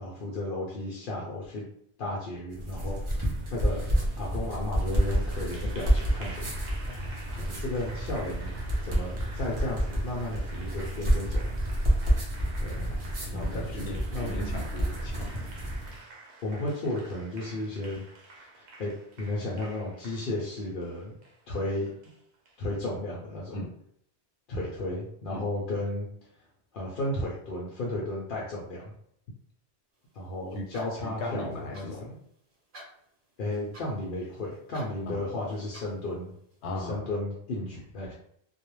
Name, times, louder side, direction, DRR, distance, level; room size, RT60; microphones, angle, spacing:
voice 1, 0.0-1.6 2.0-3.0 3.5-6.5 7.3-11.5 12.6-12.8 13.3-14.3 16.4-18.0 18.4-21.1 21.5-21.9 22.6-23.6 24.5-26.1 26.7-28.9 30.1-32.2 33.4-36.3 36.8-38.1, left 1 dB, 60° left, -4 dB, 0.7 m, -34 dB
sound 1, 2.5-16.0, right 1 dB, 35° right, 0.6 m, -29 dB
Applause, 4.7-22.6, right 2 dB, 85° right, 0.9 m, -49 dB
voice 2, 13.3-15.4 23.5-23.7 25.3-25.4 30.5-30.6 31.0-32.1 35.1-35.2 36.6-37.0 37.7-37.8, left 1 dB, 90° left, 1 dB, 0.9 m, -37 dB
sound 2, 29.9-36.6, right 1 dB, 55° right, 1.0 m, -55 dB
2.3 x 2.0 x 3.0 m, 0.68 s
omnidirectional pair, 1.1 m